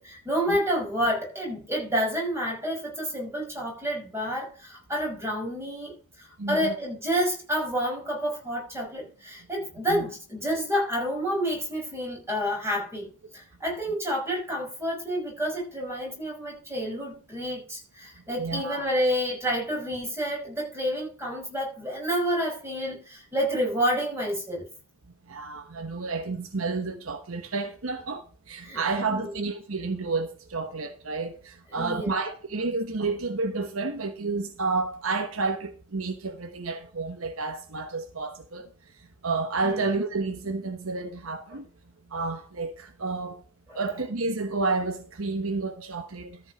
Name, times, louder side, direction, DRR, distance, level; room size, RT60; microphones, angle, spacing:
voice 1, 0.0-24.7 28.6-28.8 29.1-29.4 31.7-32.2 39.6-39.9 43.7-43.8, equal, 10° right, 6.0 m, -29 dB
voice 2, 6.4-6.7 9.9-10.0 18.4-18.9 19.4-19.5 25.3-38.7 39.2-41.7 42.1-43.4 43.7-46.4, right 3 dB, 70° right, 1.2 m, -30 dB
13.5 x 5.4 x 5.9 m
head